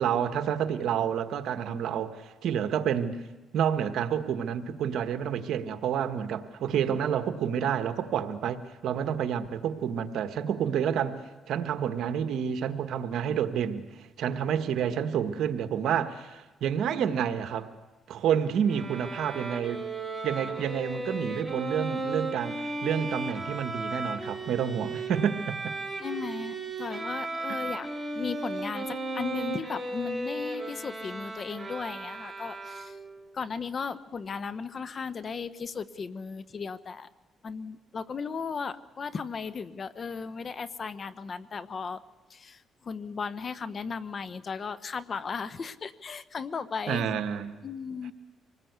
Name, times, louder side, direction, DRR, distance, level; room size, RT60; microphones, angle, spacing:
voice 1, 0.0-3.2 3.5-11.2 11.5-17.7 18.1-19.8 20.2-25.8 27.5-27.6 46.9-47.6, right 8 dB, 75° right, 9 dB, 1.5 m, -29 dB
Bowed string instrument, 18.7-33.2, right 2 dB, 10° right, 3.8 m, -35 dB
voice 2, 26.0-27.9 28.1-33.0 33.3-37.1 37.4-42.0 42.3-47.0 47.6-48.1, left 5 dB, 45° left, 15 dB, 1.0 m, -36 dB
25.5 x 19.5 x 8.2 m, 1.1 s
cardioid pair, 90°, 0 cm